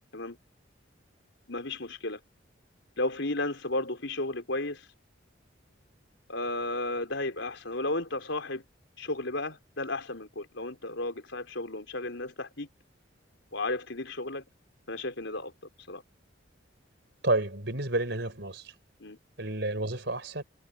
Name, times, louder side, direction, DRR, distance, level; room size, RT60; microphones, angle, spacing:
voice 1, 1.5-2.2 3.0-4.9 6.3-8.6 9.0-12.7 13.5-14.4 14.9-15.5 15.9-16.0 19.0-19.2, left 2 dB, 70° left, 4.6 m, -33 dB
voice 2, 17.2-18.7 19.4-20.4, right 2 dB, 65° right, 4.9 m, -30 dB
head